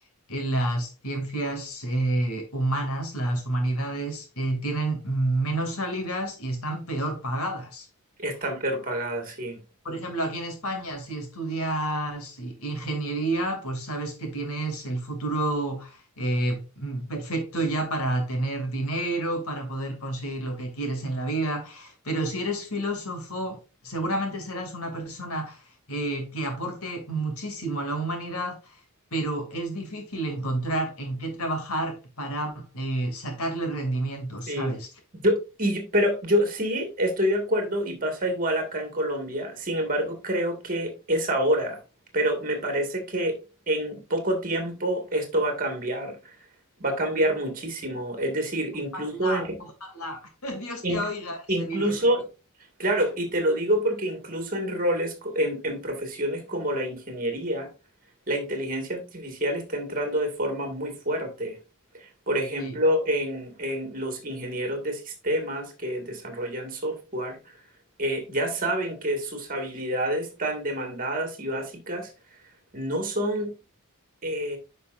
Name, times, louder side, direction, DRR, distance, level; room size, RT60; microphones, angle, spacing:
voice 1, 0.3-7.9 9.8-23.6 23.8-25.6 25.9-28.8 29.1-34.9 48.9-49.4 49.8-51.9 62.6-62.7, right 1 dB, 70° left, 2.7 m, -30 dB
voice 2, 8.2-9.6 34.5-34.7 35.2-41.8 42.1-43.4 43.7-46.4 46.8-49.6 50.8-51.0 51.5-52.2 52.8-57.7 58.3-61.6 61.9-67.4 68.0-72.1 72.7-73.5 74.2-74.6, right 1 dB, 40° right, 2.2 m, -27 dB
10.0 x 5.4 x 2.6 m
head